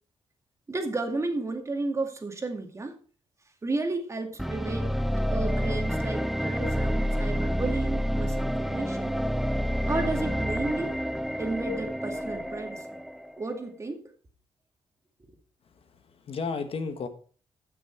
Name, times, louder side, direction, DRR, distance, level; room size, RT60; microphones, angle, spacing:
voice 1, 0.7-3.0 3.6-5.0 5.3-9.2 9.9-10.9 11.4-13.0 13.4-14.0, right 2 dB, 30° right, 5 dB, 2.1 m, -32 dB
sound 1, 4.4-13.4, equal, ahead, 0.5 m, -29 dB
voice 2, 15.6-17.1, left 4 dB, 65° left, 8 dB, 1.5 m, -34 dB
15.0 x 6.3 x 4.6 m, 0.41 s
cardioid pair, 110°, 10 cm